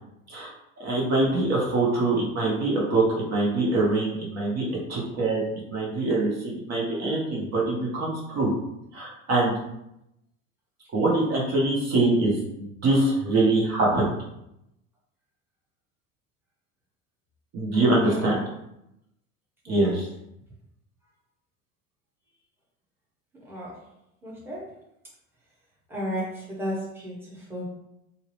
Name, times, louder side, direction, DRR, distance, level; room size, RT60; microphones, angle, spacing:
voice 1, 0.8-5.4 5.7-8.5 8.9-9.5 10.9-14.1 17.5-18.4 19.7-20.1, right 2 dB, 40° right, -4 dB, 0.9 m, -24 dB
voice 2, 18.0-18.5 19.7-20.0 23.4-23.8 24.2-24.7 25.9-27.7, equal, 5° right, -5 dB, 0.9 m, -33 dB
2.6 x 2.0 x 3.1 m, 0.82 s
hypercardioid pair, 80°, 40 cm